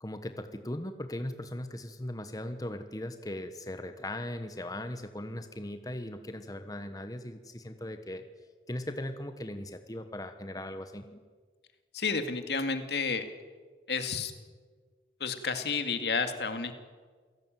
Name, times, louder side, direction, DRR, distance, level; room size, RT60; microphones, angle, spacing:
voice 1, 0.0-8.2 8.7-11.2, left 1 dB, 20° left, 8 dB, 1.2 m, -38 dB
voice 2, 11.9-13.3 13.9-14.3 15.2-16.7, left 4 dB, 75° left, 8 dB, 2.4 m, -31 dB
28.0 x 17.5 x 9.2 m, 1.5 s
head